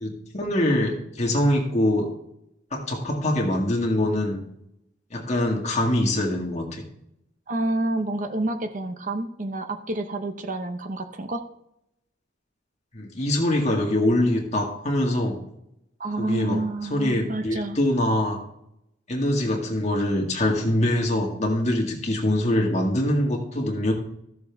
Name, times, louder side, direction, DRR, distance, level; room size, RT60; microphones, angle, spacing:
voice 1, 0.0-2.1 2.7-4.4 5.1-6.8 12.9-15.4 16.2-16.6 16.9-18.4 19.1-23.9, left 1 dB, 35° left, 0 dB, 1.9 m, -24 dB
voice 2, 7.5-11.4 16.0-17.8, right 2 dB, 40° right, 7 dB, 0.8 m, -28 dB
14.5 x 6.9 x 3.5 m, 0.80 s
head